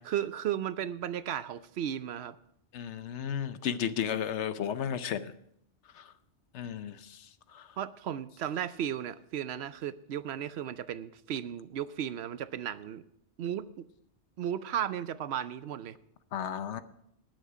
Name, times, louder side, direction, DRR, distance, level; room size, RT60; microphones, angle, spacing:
voice 1, 0.1-2.3 7.8-13.0 13.4-13.8 14.4-16.0, right 10 dB, 70° right, 14 dB, 0.8 m, -35 dB
voice 2, 2.7-5.3 5.9-6.1 6.5-7.3 7.5-7.7 16.3-16.8, left 8 dB, 85° left, 12 dB, 1.0 m, -34 dB
19.0 x 6.4 x 4.9 m, 0.74 s
omnidirectional pair, 1.2 m